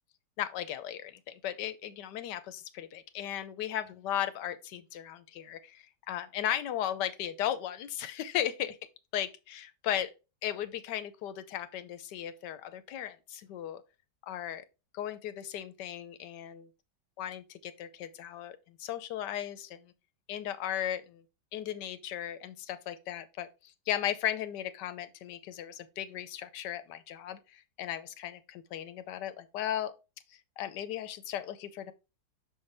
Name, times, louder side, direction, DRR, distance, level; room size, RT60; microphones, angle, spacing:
voice 1, 0.4-8.8 9.1-10.1 10.4-13.8 14.2-14.6 14.9-16.7 17.2-19.9 20.3-21.2 21.5-29.9 30.3-31.9, left 11 dB, 85° left, 1.3 m, -36 dB
5.6 x 5.3 x 3.3 m
omnidirectional pair, 1.8 m